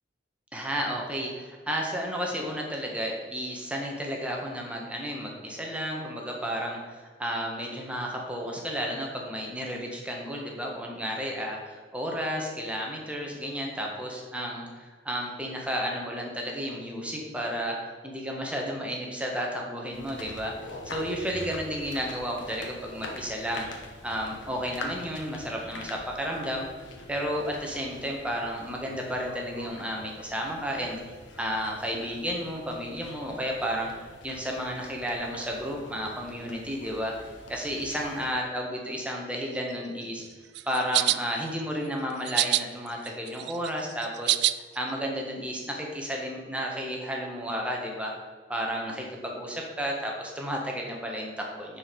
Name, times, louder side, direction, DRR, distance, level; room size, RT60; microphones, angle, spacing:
voice 1, 0.5-17.8 18.0-20.5 20.8-23.7 24.0-26.7 27.1-31.0 31.4-33.9 34.2-37.1 37.5-40.2 40.7-44.4 44.7-48.1 48.5-51.8, equal, 5° right, -1 dB, 1.5 m, -32 dB
sound 1, 19.9-38.3, left 1 dB, 85° left, 1.3 m, -44 dB
sound 2, 40.5-41.2 42.3-42.6 43.0-44.5, right 15 dB, 60° right, 0.3 m, -24 dB
9.6 x 4.9 x 5.3 m, 1.5 s
head